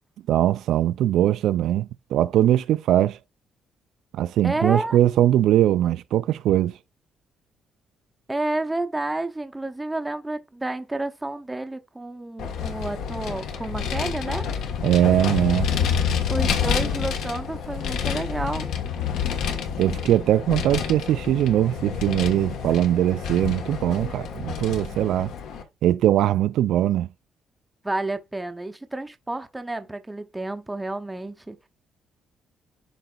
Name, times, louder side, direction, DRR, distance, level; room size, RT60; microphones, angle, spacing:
voice 1, 0.3-3.2 4.1-6.7 14.8-15.7 19.8-25.3 25.8-27.1, right 12 dB, 70° right, 0.3 m, -21 dB
voice 2, 4.4-5.0 8.3-14.4 16.3-18.7 24.9-25.1 27.8-31.6, right 2 dB, 10° right, 0.6 m, -30 dB
Vehicle, 12.4-25.6, left 7 dB, 70° left, 1.3 m, -28 dB
12.0 x 4.0 x 2.3 m
cardioid pair, 170°, 0 cm